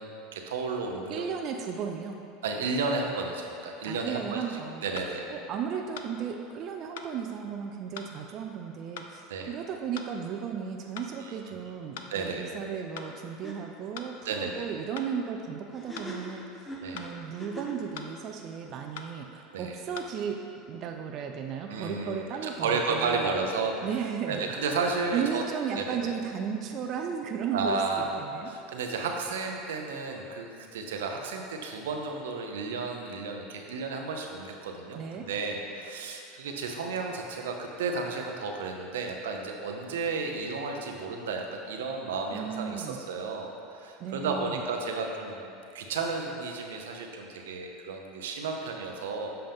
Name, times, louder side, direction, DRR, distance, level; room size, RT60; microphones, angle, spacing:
voice 1, 0.0-1.2 2.4-4.4 4.8-5.2 9.3-9.5 11.2-11.4 12.1-12.5 14.2-14.7 16.8-17.0 19.5-19.7 21.7-23.7 24.3-25.4 25.8-26.2 27.5-28.2 28.5-45.5 45.7-49.3, right 4 dB, 90° right, 2 dB, 0.8 m, -32 dB
voice 2, 1.1-2.2 3.9-4.9 5.3-23.4 23.8-24.5 25.1-28.5 34.9-35.3 42.3-43.0 44.0-44.6, right 7 dB, 45° right, 3 dB, 0.4 m, -35 dB
sound 1, 5.0-5.1 6.0-6.1 7.0-7.1 8.0-8.1 9.0-9.1 10.0-10.1 11.0-11.1 12.0-12.1 13.0-13.1 14.0-14.1 15.0-15.1 16.0-16.1 17.0-17.1 18.0-18.1 19.0-19.1 20.0-20.1, left 7 dB, 80° left, 0.5 m, -41 dB
sound 2, 13.0-13.2 13.4-13.6 15.7-17.9, right 1 dB, 15° left, 1.0 m, -41 dB
7.8 x 5.5 x 3.6 m, 2.5 s
supercardioid pair, 115°, 0 cm